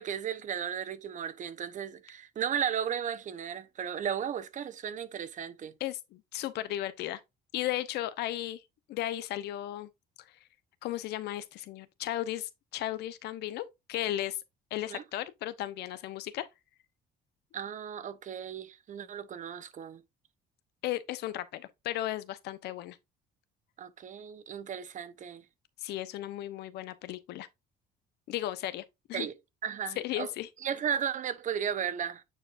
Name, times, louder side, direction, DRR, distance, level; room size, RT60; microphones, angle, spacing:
voice 1, 0.0-5.7 14.9-15.0 17.5-20.0 23.8-25.4 29.1-29.3 29.6-30.3 30.6-32.2, right 8 dB, 50° right, 1.0 m, -35 dB
voice 2, 5.8-7.2 7.5-8.6 8.9-9.9 10.8-14.4 14.7-16.5 20.8-23.0 25.8-27.5 28.3-28.8 29.1-29.3 30.0-30.5, left 14 dB, 80° left, 0.9 m, -35 dB
9.2 x 4.8 x 2.6 m
cardioid pair, 110°, 17 cm